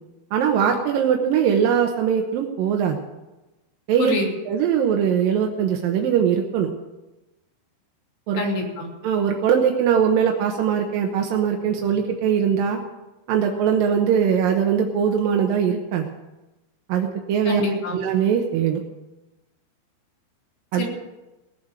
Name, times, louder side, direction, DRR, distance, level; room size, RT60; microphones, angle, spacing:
voice 1, 0.3-3.0 3.9-4.1 4.5-6.7 8.3-8.4 9.0-12.8 13.3-16.0 16.9-17.7 17.9-18.8 20.7-20.9, right 8 dB, 70° right, 2 dB, 2.3 m, -21 dB
voice 2, 8.4-8.9 17.5-18.0 20.8-20.9, left 2 dB, 65° left, -1 dB, 5.1 m, -25 dB
18.0 x 7.9 x 8.9 m, 1.1 s
omnidirectional pair, 5.1 m